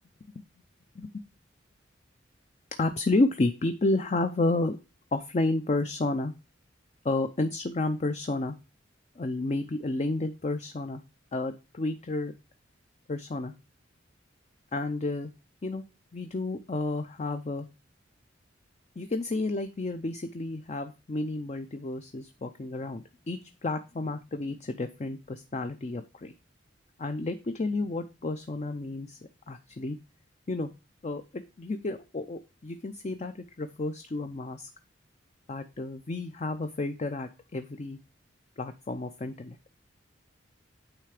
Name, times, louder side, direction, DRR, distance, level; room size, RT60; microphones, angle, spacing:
voice 1, 2.8-4.8 5.1-6.3 7.0-8.6 9.2-11.0 11.3-12.3 13.1-13.5 14.7-15.3 15.6-15.8 16.1-17.7 19.0-26.3 27.0-29.2 29.5-30.0 30.5-30.7 31.0-34.7 35.5-38.0 38.6-39.6, left 2 dB, 35° left, 8 dB, 0.5 m, -31 dB
9.0 x 3.4 x 4.9 m, 0.29 s
head